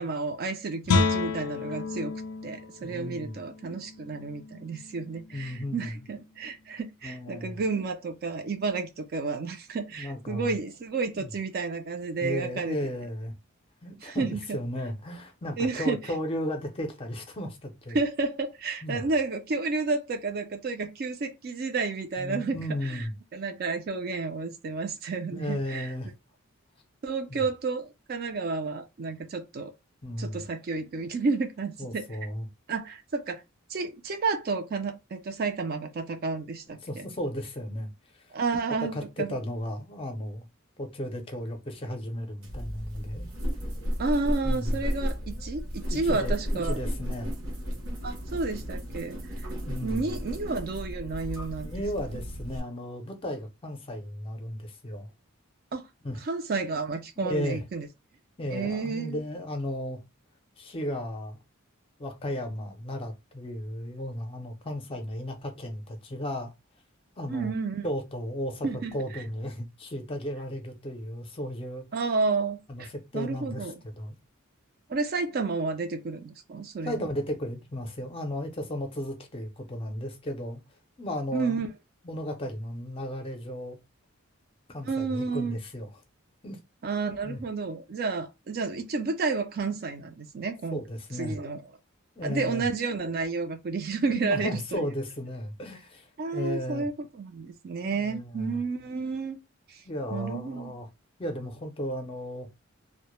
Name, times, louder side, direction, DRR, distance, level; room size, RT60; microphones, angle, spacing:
voice 1, 0.0-2.1 2.4-12.8 14.0-14.4 15.6-16.0 17.9-23.0 23.3-25.9 27.0-29.7 30.2-32.0 32.7-33.4 33.7-37.1 38.3-39.3 44.0-46.8 48.0-49.2 49.8-51.7 55.7-55.9 56.2-57.9 58.5-59.2 67.3-67.9 68.6-68.9 71.9-72.9 73.1-73.8 74.9-76.9 81.3-81.7 84.8-85.6 86.8-90.8 91.2-91.6 92.2-94.8 96.2-99.4 99.7-99.8 100.1-100.7, right 4 dB, 45° right, 0.4 m, -31 dB
Guitar, 0.8-6.4, left 4 dB, 85° left, 0.4 m, -31 dB
voice 2, 2.8-3.4 5.3-6.0 7.0-7.6 9.9-10.6 11.1-11.3 12.2-13.3 13.8-18.0 18.8-19.1 22.2-23.1 25.3-26.1 27.3-27.5 30.0-30.5 31.8-32.5 36.7-38.3 38.9-40.4 40.8-43.3 44.4-44.8 45.9-47.3 49.7-50.2 51.6-55.1 56.0-56.2 57.2-57.6 58.4-60.0 60.6-61.4 62.0-66.5 67.2-67.5 67.8-71.8 72.7-74.2 76.8-80.6 81.0-81.6 82.0-83.8 84.7-86.0 86.4-86.6 87.2-87.4 90.7-91.4 92.2-92.7 94.1-96.9 97.8-98.6 99.8-100.9 101.2-102.5, equal, 25° left, 0.5 m, -35 dB
sound 1, 42.4-52.6, equal, 70° right, 0.8 m, -33 dB
2.1 x 2.0 x 2.9 m
head